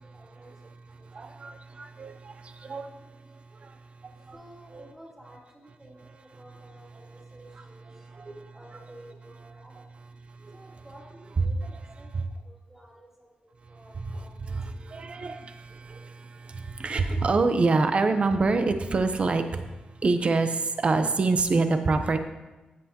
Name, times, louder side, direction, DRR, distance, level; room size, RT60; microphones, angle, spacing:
voice 1, 0.0-1.1 2.6-2.7 4.3-8.1 8.5-9.9 10.5-14.9, right 1 dB, 10° right, -5 dB, 2.6 m, -53 dB
voice 2, 0.9-4.4 4.7-4.9 7.5-8.5 9.7-9.8 10.3-10.8 11.4-11.5 12.1-12.2 13.6-22.2, right 3 dB, 40° right, 8 dB, 0.7 m, -27 dB
13.5 x 8.0 x 2.9 m, 1.1 s
wide cardioid pair, 150°, 3 cm